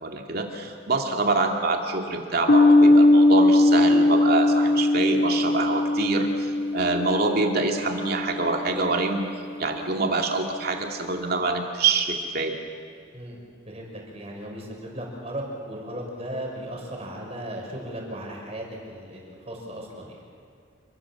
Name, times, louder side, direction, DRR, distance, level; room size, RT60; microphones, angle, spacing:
voice 1, 0.0-9.3 9.6-12.5, right 3 dB, 50° right, 2 dB, 2.7 m, -26 dB
sound 1, 2.5-9.2, left 2 dB, 50° left, 1.9 m, -20 dB
voice 2, 13.7-20.2, right 1 dB, 30° right, 0 dB, 6.0 m, -36 dB
28.0 x 24.0 x 7.4 m, 2.3 s
head